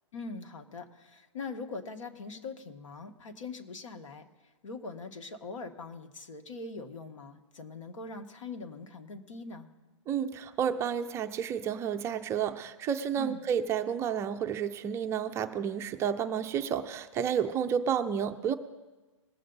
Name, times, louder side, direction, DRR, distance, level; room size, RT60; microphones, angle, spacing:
voice 1, 0.1-4.3 4.6-9.7 13.2-13.4, left 3 dB, 80° left, 7 dB, 1.4 m, -42 dB
voice 2, 10.1-18.5, right 8 dB, 15° right, 8 dB, 0.4 m, -31 dB
20.5 x 7.8 x 3.9 m, 1.2 s
hypercardioid pair, 145°, 16 cm